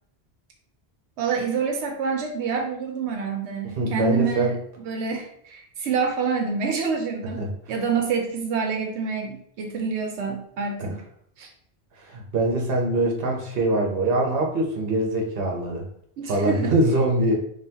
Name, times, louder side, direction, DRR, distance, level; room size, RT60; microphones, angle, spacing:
voice 1, 1.2-4.5 4.8-7.4 7.7-11.0 11.4-11.5 16.2-16.7, right 5 dB, 90° right, 3 dB, 0.9 m, -27 dB
voice 2, 3.8-4.5 7.2-7.5 10.8-11.0 12.0-15.8 16.3-17.3, right 1 dB, 60° right, 1 dB, 1.0 m, -23 dB
3.8 x 3.5 x 2.8 m, 0.68 s
omnidirectional pair, 1.1 m